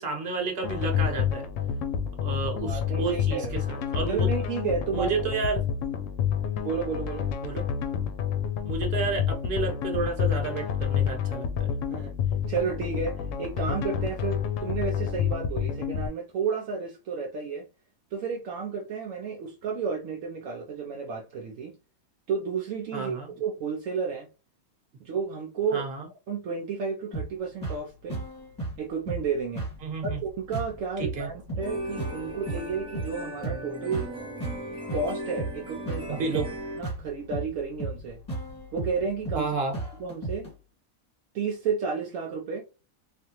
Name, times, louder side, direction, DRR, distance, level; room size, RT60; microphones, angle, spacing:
voice 1, 0.0-1.5 2.2-4.3 4.9-5.6 7.4-7.6 8.6-11.7 22.9-23.3 25.7-26.1 29.8-30.2 31.0-31.3 36.1-36.5 39.3-39.7, right 4 dB, 50° right, 1.1 m, -31 dB
sound 1, 0.6-16.1, left 8 dB, 70° left, 0.9 m, -29 dB
voice 2, 2.6-3.6 4.1-5.2 6.6-7.3 11.9-12.1 12.5-17.7 18.1-21.7 22.3-23.1 23.4-24.3 25.0-25.8 26.3-28.2 28.8-29.7 30.0-34.1 34.9-36.4 36.8-38.2 38.7-39.5 40.0-40.5 41.3-42.6, right 5 dB, 70° right, 0.9 m, -32 dB
sound 2, 27.1-40.5, right 2 dB, 15° left, 1.4 m, -36 dB
sound 3, 31.6-36.8, right 1 dB, 5° right, 0.4 m, -37 dB
3.3 x 2.5 x 2.9 m
omnidirectional pair, 1.5 m